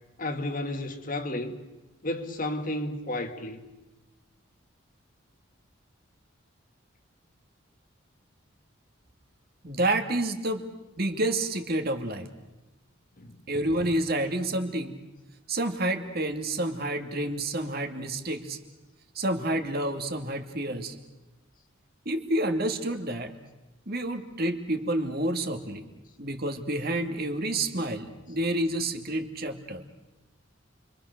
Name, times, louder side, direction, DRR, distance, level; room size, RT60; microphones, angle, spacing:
voice 1, 0.2-1.6 2.0-3.6 13.2-13.4, left 1 dB, 40° left, 1.9 m, -32 dB
voice 2, 9.6-10.7 11.0-12.3 13.5-15.0 15.5-18.6 19.2-20.9 22.1-23.3 23.9-25.8 26.2-29.8, right 1 dB, 50° right, 2.3 m, -29 dB
29.5 x 24.0 x 6.7 m
head